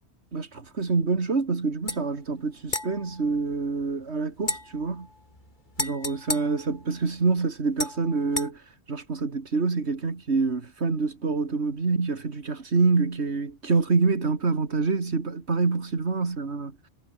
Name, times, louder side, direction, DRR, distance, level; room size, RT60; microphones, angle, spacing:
voice 1, 0.3-5.1 5.8-8.6 8.9-16.8, right 4 dB, 90° right, 2.6 m, -26 dB
sound 1, 1.9-2.0 2.7-4.0 4.4-7.3 7.8-8.5, left 2 dB, 45° left, 4.2 m, -35 dB
omnidirectional pair, 1.1 m